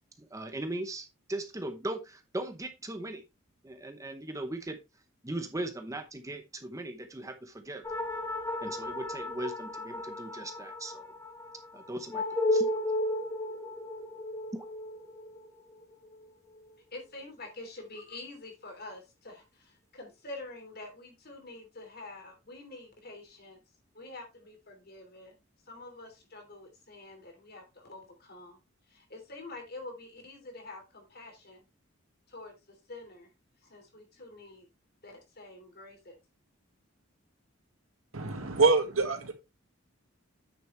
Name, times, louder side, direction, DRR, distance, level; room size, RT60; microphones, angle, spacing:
voice 1, 0.2-3.2 3.6-4.8 5.2-7.8 8.6-11.1 11.7-12.8 14.5-14.6, right 1 dB, 15° right, 7 dB, 0.8 m, -38 dB
sound 1, 7.8-16.7, left 1 dB, 15° left, 1.4 m, -34 dB
voice 2, 16.9-23.6 23.9-25.3 25.7-28.6 28.9-31.6 32.3-33.3 33.6-34.7 35.0-36.2, left 2 dB, 50° left, 4 dB, 3.1 m, -47 dB
voice 3, 38.1-39.3, right 3 dB, 90° right, 5 dB, 1.9 m, -25 dB
8.8 x 6.9 x 3.2 m, 0.25 s
head